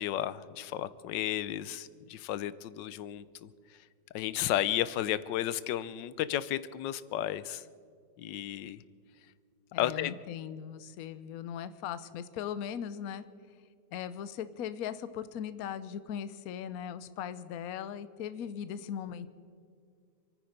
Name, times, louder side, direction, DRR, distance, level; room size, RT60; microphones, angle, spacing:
voice 1, 0.0-3.5 4.1-7.6 8.2-8.8 9.8-10.1, left 12 dB, 80° left, 17 dB, 1.3 m, -33 dB
voice 2, 9.7-13.3 13.9-19.3, left 9 dB, 65° left, 13 dB, 1.0 m, -39 dB
27.5 x 9.7 x 5.2 m, 2.2 s
omnidirectional pair, 2.0 m